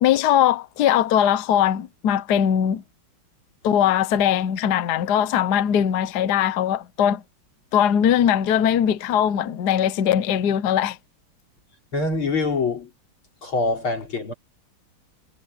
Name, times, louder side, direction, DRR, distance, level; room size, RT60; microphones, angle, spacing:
voice 1, 0.0-2.8 3.6-7.2 7.7-11.0, left 9 dB, 60° left, 1.3 m, -20 dB
voice 2, 11.9-12.9 13.4-14.3, left 3 dB, 90° left, 5.1 m, -24 dB
omnidirectional pair, 2.2 m